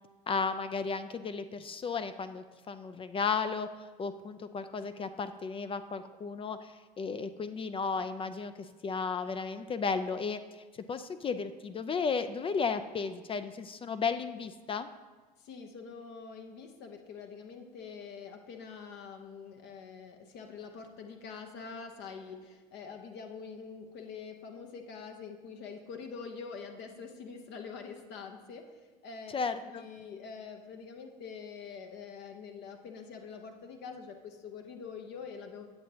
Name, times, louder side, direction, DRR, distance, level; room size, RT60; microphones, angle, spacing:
voice 1, 0.3-3.7 4.0-14.9 29.3-29.9, left 5 dB, 25° left, 11 dB, 0.4 m, -34 dB
voice 2, 15.4-29.3 29.6-35.7, left 5 dB, 60° left, 4 dB, 0.8 m, -45 dB
8.7 x 7.3 x 2.8 m, 1.3 s
hypercardioid pair, 70°, 21 cm